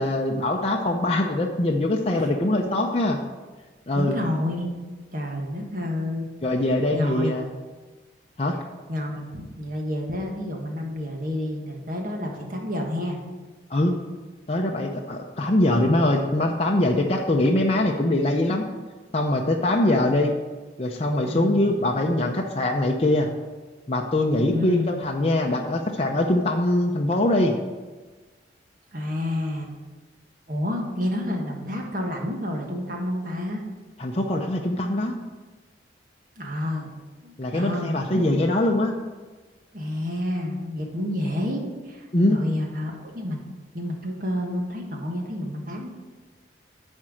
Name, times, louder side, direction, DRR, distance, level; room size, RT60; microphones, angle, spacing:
voice 1, 0.0-3.2 3.9-4.2 6.4-7.5 8.4-8.6 13.7-14.0 14.5-18.7 19.1-20.3 20.8-23.3 23.9-27.6 34.0-35.2 37.4-38.9 42.1-42.4, left 1 dB, 35° left, 0 dB, 0.6 m, -22 dB
voice 2, 3.9-4.7 5.1-6.3 6.9-7.4 8.9-13.2 19.8-20.1 21.2-21.7 24.4-25.0 28.9-29.7 30.5-33.6 36.4-36.9 37.2-38.3 39.7-43.4 43.7-45.9, left 1 dB, 45° right, 1 dB, 1.4 m, -29 dB
10.0 x 4.4 x 6.2 m, 1.3 s
head